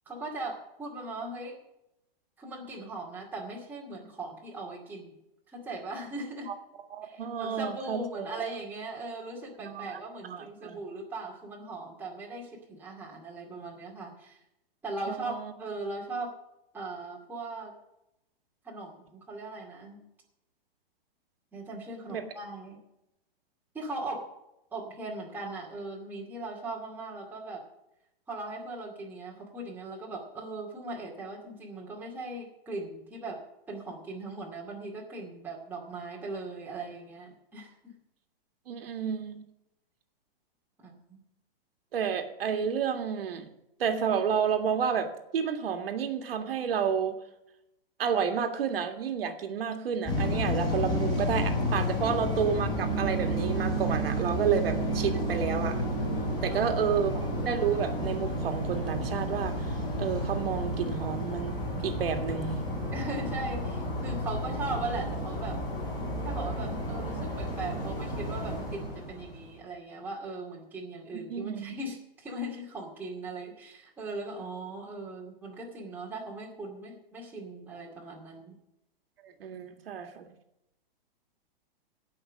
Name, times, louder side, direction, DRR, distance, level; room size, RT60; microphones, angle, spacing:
voice 1, 0.1-1.6 2.4-5.1 5.5-6.5 7.0-14.4 14.8-16.3 16.7-17.7 18.6-20.0 21.5-22.8 23.7-24.3 24.7-27.6 28.3-33.4 33.7-37.7 40.8-41.2 52.0-52.1 56.4-56.8 62.9-65.6 66.2-78.6, right 2 dB, 5° right, -3 dB, 2.2 m, -39 dB
voice 2, 6.9-8.3 9.6-10.0 10.3-10.8 15.1-15.5 22.1-22.2 38.7-39.5 41.9-43.5 43.8-47.1 48.0-55.8 56.4-61.6 61.8-62.6 71.3-71.8 79.2-80.3, right 7 dB, 75° right, 5 dB, 2.0 m, -30 dB
sound 1, 50.1-69.5, equal, 15° left, 5.9 m, -31 dB
17.0 x 5.8 x 6.5 m, 0.85 s
hypercardioid pair, 165°, 29 cm